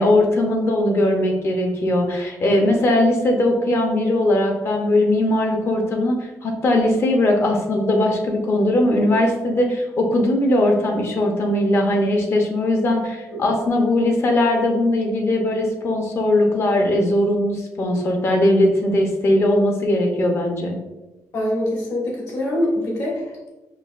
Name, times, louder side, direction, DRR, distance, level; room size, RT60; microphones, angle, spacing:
voice 1, 0.0-20.8, left 1 dB, 40° left, 2 dB, 0.6 m, -19 dB
voice 2, 21.3-23.5, left 1 dB, 60° left, -3 dB, 1.2 m, -24 dB
5.3 x 2.2 x 2.4 m, 1.0 s
cardioid pair, 145°, 6 cm